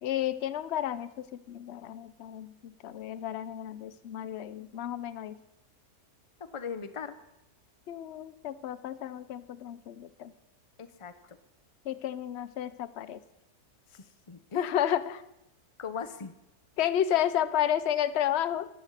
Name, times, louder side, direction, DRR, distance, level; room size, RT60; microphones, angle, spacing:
voice 1, 0.0-5.4 7.9-10.3 11.9-13.2 14.5-15.2 16.8-18.7, left 10 dB, 55° left, 16 dB, 0.8 m, -31 dB
voice 2, 6.4-7.1 10.8-11.1 13.9-14.7 15.8-16.3, left 6 dB, 25° left, 11 dB, 0.8 m, -39 dB
12.5 x 12.0 x 8.1 m, 0.89 s
omnidirectional pair, 1.8 m